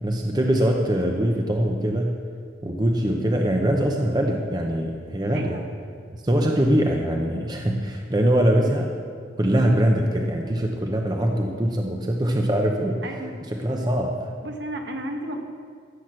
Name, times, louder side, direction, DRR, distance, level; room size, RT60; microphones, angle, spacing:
voice 1, 0.0-2.2 2.6-5.6 6.2-8.9 9.4-14.2, right 1 dB, 20° right, 2 dB, 0.8 m, -23 dB
voice 2, 5.3-5.6 13.0-13.4 14.4-15.5, right 1 dB, 65° right, 3 dB, 1.4 m, -33 dB
14.5 x 7.8 x 6.3 m, 2.1 s
head